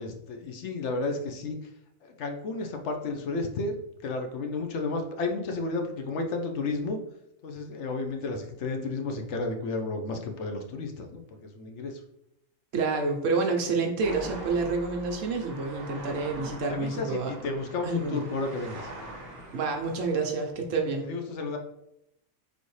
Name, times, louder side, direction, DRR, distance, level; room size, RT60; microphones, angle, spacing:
voice 1, 0.0-1.7 2.0-7.0 7.4-12.0 16.6-18.9 21.0-21.6, left 3 dB, 65° left, 4 dB, 0.8 m, -32 dB
voice 2, 12.7-17.3 17.8-18.2 19.5-21.1, right 4 dB, 70° right, 2 dB, 1.0 m, -28 dB
sound 1, 14.0-20.3, right 2 dB, 50° right, 1.2 m, -43 dB
4.2 x 3.4 x 3.1 m, 0.79 s
omnidirectional pair, 1.4 m